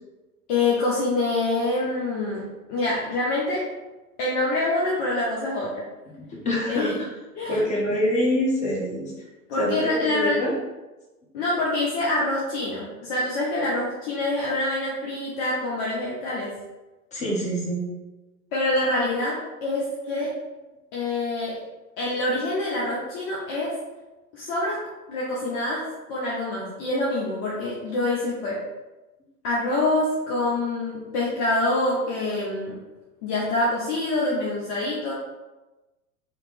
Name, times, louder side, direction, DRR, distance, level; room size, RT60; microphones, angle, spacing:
voice 1, 0.5-2.4 2.7-3.7 4.2-5.8 6.7-7.0 7.4-7.6 9.5-10.4 11.3-16.5 18.5-20.3 20.9-21.6 22.0-23.8 24.3-28.6 29.4-32.8 33.2-35.1, left 2 dB, 35° left, -5 dB, 0.8 m, -26 dB
voice 2, 6.3-6.9 7.5-9.1 9.6-10.5 17.1-17.9, equal, 15° left, -4 dB, 1.0 m, -25 dB
3.2 x 2.8 x 3.4 m, 1.1 s
figure-of-eight pair, 95°, 46 cm